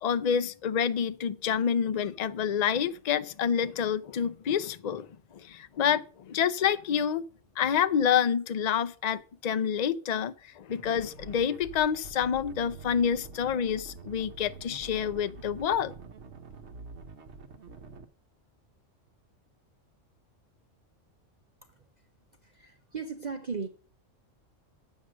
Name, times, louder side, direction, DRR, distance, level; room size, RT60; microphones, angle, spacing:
voice 1, 0.0-5.1 5.3-7.2 7.6-15.9, left 8 dB, 50° left, 0.5 m, -28 dB
sound 1, 10.7-18.0, right 4 dB, 60° right, 1.2 m, -46 dB
voice 2, 22.4-23.7, right 5 dB, 40° right, 0.9 m, -37 dB
9.2 x 7.4 x 6.2 m
omnidirectional pair, 1.3 m